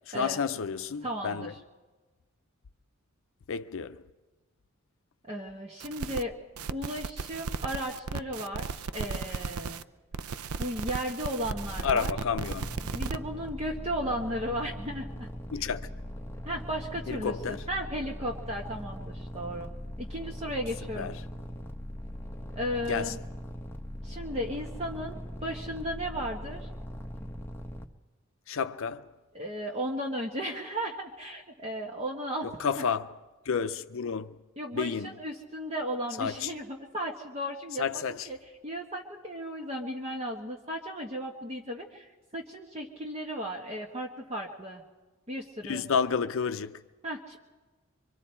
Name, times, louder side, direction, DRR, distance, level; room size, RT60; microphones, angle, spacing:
voice 1, 0.1-1.5 3.5-4.0 11.8-12.7 15.5-15.9 17.1-17.6 21.0-21.2 22.9-23.2 28.5-29.1 32.4-33.1 33.4-34.4 34.7-35.1 36.2-36.5 37.8-38.3 45.6-46.8, left 6 dB, 65° left, 0.5 m, -31 dB
voice 2, 1.0-1.5 5.3-6.4 6.7-9.8 10.6-12.1 12.9-15.3 16.4-21.1 22.5-23.2 24.0-26.7 29.3-32.5 33.6-33.7 34.6-38.4 38.6-44.8 45.3-45.9 47.0-47.4, equal, 30° right, 1.2 m, -35 dB
sound 1, 5.8-6.2 6.6-9.8 10.1-13.2, right 5 dB, 85° right, 0.5 m, -35 dB
sound 2, 11.4-27.9, equal, 10° left, 0.9 m, -40 dB
24.5 x 24.0 x 4.4 m
head